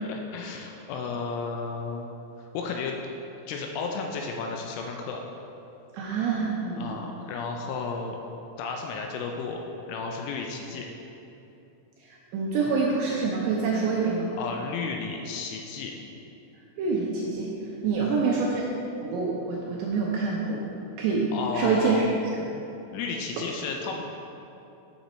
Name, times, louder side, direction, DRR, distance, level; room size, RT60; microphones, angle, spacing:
voice 1, 0.1-2.1 2.4-3.0 3.5-5.2 6.8-8.2 8.6-10.9 14.4-15.9 18.0-18.2 21.3-22.0 22.9-24.0, left 4 dB, 80° left, 2 dB, 2.9 m, -33 dB
voice 2, 5.9-7.0 12.0-14.3 16.8-17.5 17.8-18.7 19.0-20.6 21.0-21.3 21.5-22.1, right 4 dB, 80° right, -3 dB, 2.5 m, -26 dB
9.4 x 7.0 x 4.2 m, 2.9 s
omnidirectional pair, 5.9 m